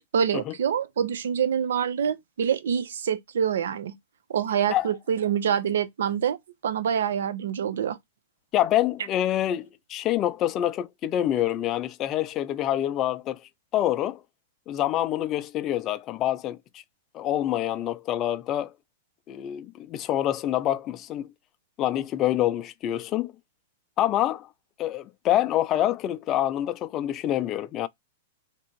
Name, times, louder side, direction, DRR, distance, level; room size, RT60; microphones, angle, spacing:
voice 1, 0.1-4.0 4.3-6.4 6.6-8.0, right 8 dB, 85° right, 0.6 m, -26 dB
voice 2, 8.5-13.4 13.7-14.2 14.7-16.8 17.1-18.7 19.3-21.3 21.8-23.3 24.0-24.5 24.8-27.9, left 12 dB, 30° left, 0.4 m, -26 dB
3.5 x 2.9 x 4.5 m
supercardioid pair, 150°, 0 cm